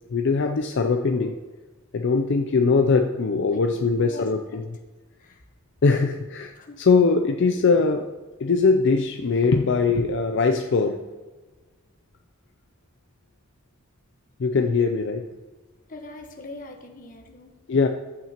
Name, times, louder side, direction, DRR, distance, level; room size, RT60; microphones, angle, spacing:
voice 1, 0.1-1.4 1.9-4.6 5.8-6.5 6.8-8.1 8.4-11.0 14.4-15.3 17.7-17.9, left 4 dB, 60° left, 5 dB, 0.4 m, -21 dB
voice 2, 3.5-4.6 5.2-5.5 6.5-6.8 15.9-17.5, left 2 dB, 40° left, 2 dB, 1.2 m, -42 dB
12.0 x 8.3 x 2.9 m, 1.3 s
head